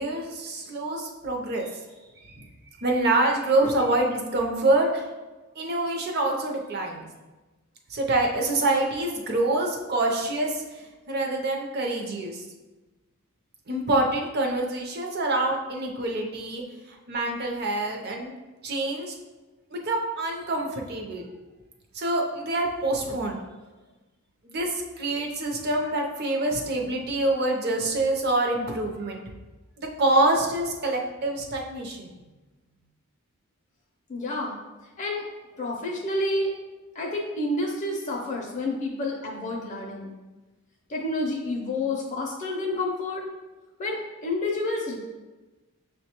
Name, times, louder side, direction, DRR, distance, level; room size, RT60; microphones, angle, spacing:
voice 1, 0.0-1.7 2.3-2.5 2.8-5.0 5.6-7.1 7.9-10.6 11.1-12.4 13.7-18.3 18.6-19.1 19.7-21.2 21.9-23.4 24.4-29.2 29.8-32.1, right 2 dB, 45° right, 1 dB, 0.5 m, -26 dB
voice 2, 34.1-34.6 35.0-35.2 35.6-36.5 36.9-40.1 40.9-43.2 43.8-45.0, left 2 dB, 35° left, -1 dB, 0.5 m, -29 dB
6.3 x 2.2 x 2.9 m, 1.2 s
head